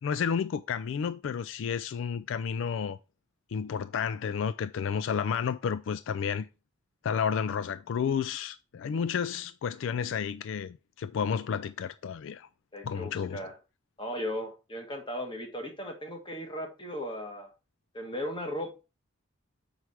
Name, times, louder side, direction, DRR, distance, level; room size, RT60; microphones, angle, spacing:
voice 1, 0.0-3.0 3.5-6.5 7.0-12.5 12.8-13.4, left 7 dB, 70° left, 0.3 m, -31 dB
voice 2, 12.7-13.5 14.0-17.5 17.9-18.7, equal, 25° left, 1.5 m, -36 dB
5.7 x 4.8 x 4.6 m
head